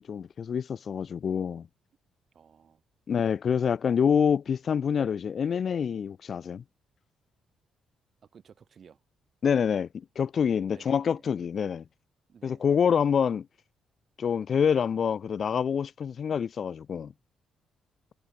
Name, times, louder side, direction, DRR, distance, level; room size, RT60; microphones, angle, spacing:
voice 1, 0.0-1.7 3.1-6.6 9.4-11.8 12.4-13.5 14.2-17.1, left 7 dB, 50° left, 0.4 m, -26 dB
voice 2, 2.3-2.8 8.3-9.0 10.7-11.3 12.3-12.7, right 7 dB, 50° right, 6.3 m, -54 dB
cardioid pair, 90°, 0 cm